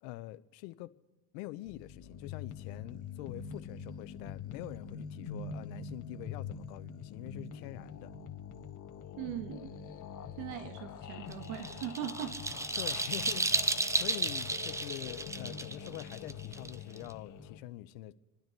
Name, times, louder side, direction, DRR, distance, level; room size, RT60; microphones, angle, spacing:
voice 1, 0.0-0.9 1.3-8.1 12.8-18.1, left 17 dB, 75° left, 0.9 m, -45 dB
sound 1, 1.7-17.6, left 6 dB, 40° left, 1.6 m, -44 dB
voice 2, 9.2-9.7 10.4-12.4, right 11 dB, 75° right, 2.1 m, -40 dB
sound 2, 11.3-17.1, right 2 dB, 5° right, 0.4 m, -33 dB
28.0 x 9.5 x 4.6 m
supercardioid pair, 95°, 48 cm